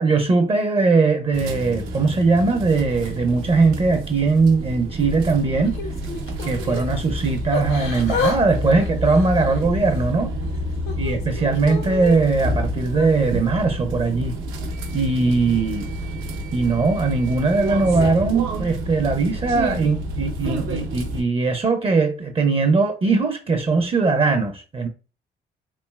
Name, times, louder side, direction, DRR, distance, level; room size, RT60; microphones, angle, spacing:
voice 1, 0.0-5.8 6.4-10.3 11.0-14.3 14.9-15.9 16.5-24.9, right 3 dB, 30° right, 0.5 m, -20 dB
sound 1, 1.3-21.2, right 1 dB, 85° right, 0.6 m, -29 dB
Yell / Crying sobbing, 5.6-6.9 7.5-8.4 8.6-10.0 10.5-12.2 12.9-13.1, left 4 dB, 75° left, 0.7 m, -30 dB
3.0 x 2.6 x 2.2 m
supercardioid pair, 70°, 21 cm